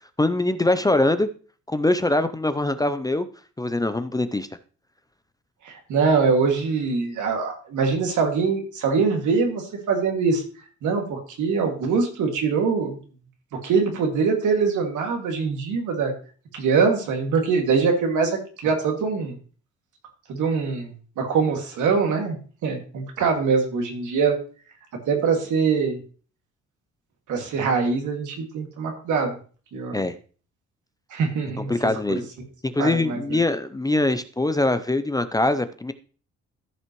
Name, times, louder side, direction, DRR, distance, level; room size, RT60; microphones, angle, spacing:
voice 1, 0.2-1.3 1.7-3.3 3.6-4.5 29.9-30.1 31.6-32.3 32.6-35.9, left 2 dB, 10° left, 11 dB, 0.5 m, -23 dB
voice 2, 5.6-10.4 10.8-13.0 13.6-16.1 16.5-19.3 20.3-22.4 22.6-24.4 25.1-26.0 27.3-29.3 29.7-30.0 31.1-31.7 32.8-33.2, right 5 dB, 80° right, 3 dB, 2.3 m, -23 dB
14.0 x 5.6 x 3.1 m, 0.39 s
cardioid pair, 90°, 30 cm